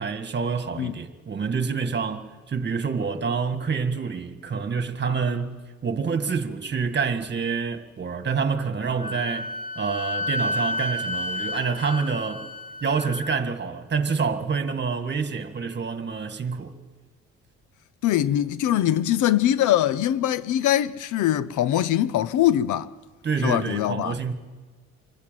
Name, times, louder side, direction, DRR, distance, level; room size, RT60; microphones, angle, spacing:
voice 1, 0.0-12.5 12.8-16.7 23.2-24.3, right 5 dB, 35° right, 1.8 m, -27 dB
Wind instrument woodwind instrument, 9.0-13.4, left 2 dB, 30° left, 1.1 m, -31 dB
voice 2, 18.0-22.9 23.4-24.2, left 12 dB, 80° left, 0.8 m, -22 dB
26.0 x 15.5 x 9.2 m
cardioid pair, 90°, 30 cm